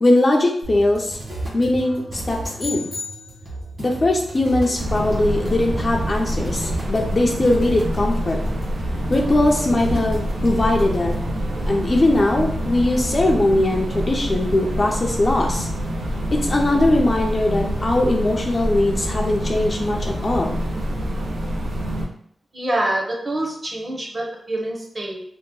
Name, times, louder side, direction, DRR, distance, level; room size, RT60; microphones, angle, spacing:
voice 1, 0.0-1.2 1.5-2.9 3.8-8.4 9.1-11.1 11.7-15.7 16.3-20.6, left 2 dB, 30° left, 1 dB, 0.4 m, -20 dB
sound 1, 0.6-11.3, right 2 dB, 50° right, 1.3 m, -34 dB
sound 2, 2.6-3.7, left 4 dB, 60° left, 0.7 m, -33 dB
sound 3, 4.7-22.0, equal, 75° right, 0.6 m, -26 dB
voice 2, 22.5-25.2, right 1 dB, 30° right, -1 dB, 0.7 m, -26 dB
2.8 x 2.1 x 3.7 m, 0.67 s
wide cardioid pair, 155°, 0 cm